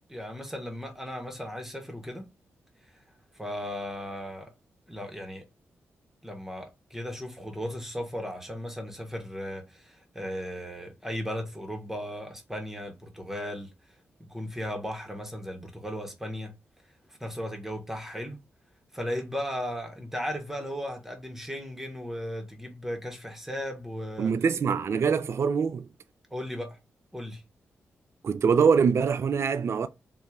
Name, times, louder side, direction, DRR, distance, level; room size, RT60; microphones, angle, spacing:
voice 1, 0.1-2.3 2.9-3.0 3.4-4.5 4.9-5.5 6.2-16.6 17.1-18.4 18.9-24.4 26.3-26.8 27.1-27.4, equal, 5° right, 1.2 m, -36 dB
voice 2, 24.2-25.9 28.2-29.9, right 6 dB, 55° right, 0.3 m, -24 dB
2.7 x 2.4 x 3.6 m
supercardioid pair, 40°, 5 cm